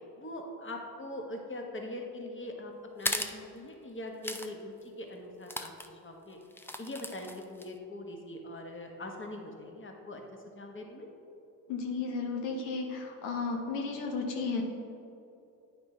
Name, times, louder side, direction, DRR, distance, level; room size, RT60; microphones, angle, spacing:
voice 1, 0.2-10.2 10.5-11.1, left 1 dB, 25° left, 2 dB, 1.4 m, -42 dB
sound 1, 3.0-3.4 4.2-4.5 4.8-4.9 5.5-5.9 6.5-7.7, left 1 dB, 5° left, 0.4 m, -36 dB
voice 2, 11.7-14.6, left 4 dB, 85° left, 2 dB, 0.9 m, -33 dB
8.9 x 5.8 x 3.3 m, 2.8 s
hypercardioid pair, 55°, 45 cm